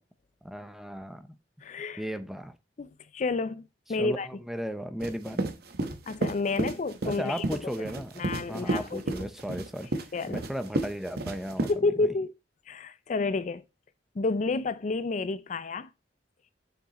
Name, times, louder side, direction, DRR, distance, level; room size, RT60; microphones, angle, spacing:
voice 1, 0.4-1.4 2.0-2.6 4.0-5.5 7.0-12.1, equal, ahead, 0.6 m, -36 dB
voice 2, 1.6-2.0 2.8-3.6 3.9-4.3 6.1-7.4 8.2-9.3 10.1-10.4 11.7-12.3 12.7-13.6 14.2-15.9, left 3 dB, 40° left, 0.4 m, -30 dB
sound 1, 5.0-11.7, right 2 dB, 60° right, 1.0 m, -32 dB
7.1 x 7.1 x 2.9 m
head